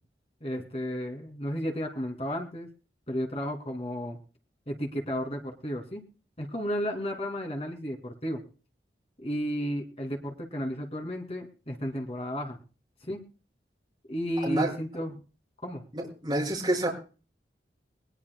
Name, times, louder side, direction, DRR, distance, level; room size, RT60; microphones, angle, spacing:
voice 1, 0.4-2.7 3.1-4.2 4.7-6.0 6.4-8.4 9.2-12.6 13.0-13.2 14.1-15.1 15.6-15.8, equal, 35° left, 3 dB, 2.6 m, -33 dB
voice 2, 15.9-16.9, right 1 dB, 25° right, -1 dB, 5.5 m, -28 dB
20.5 x 20.5 x 2.2 m, 0.36 s
head